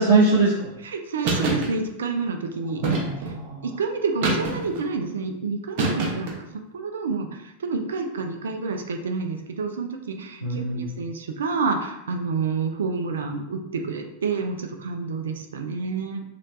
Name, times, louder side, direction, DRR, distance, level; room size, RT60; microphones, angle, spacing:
voice 1, 0.0-0.7 2.8-3.6 10.4-10.9, right 3 dB, 90° left, -7 dB, 0.9 m, -22 dB
voice 2, 0.8-2.8 3.2-3.3 3.6-16.2, right 4 dB, 65° right, 4 dB, 0.3 m, -29 dB
sound 1, 1.2-1.7 2.8-3.4 4.2-4.8 5.8-6.4, right 3 dB, 45° right, 0.9 m, -25 dB
3.1 x 2.9 x 2.6 m, 0.83 s
figure-of-eight pair, 90°, 0 cm